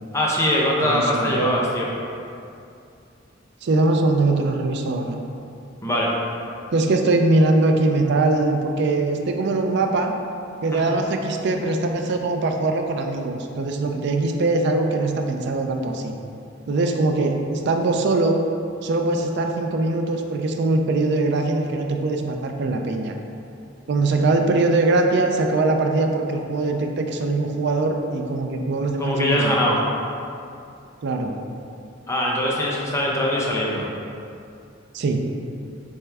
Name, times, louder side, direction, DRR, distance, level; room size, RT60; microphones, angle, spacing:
voice 1, 0.1-1.9 5.8-6.1 10.7-10.8 29.0-29.8 32.1-33.9, left 1 dB, 15° left, -4 dB, 0.6 m, -22 dB
voice 2, 0.8-1.7 3.6-5.2 6.7-10.1 10.6-16.1 16.7-18.4 18.8-23.1 23.9-29.7 31.0-31.3 34.9-35.3, right 2 dB, 60° right, 4 dB, 0.4 m, -22 dB
4.4 x 3.4 x 3.4 m, 2.6 s
head